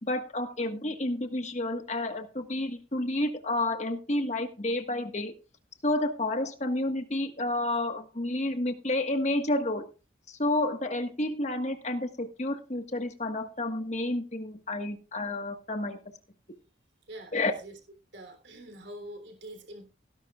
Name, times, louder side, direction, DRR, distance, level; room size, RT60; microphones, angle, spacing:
voice 1, 0.0-5.3 5.8-9.9 10.3-16.0 17.3-17.5, left 1 dB, 35° left, 6 dB, 1.6 m, -30 dB
voice 2, 17.1-17.8 18.1-19.8, right 1 dB, 65° right, 5 dB, 3.4 m, -44 dB
17.5 x 11.0 x 2.4 m, 0.33 s
head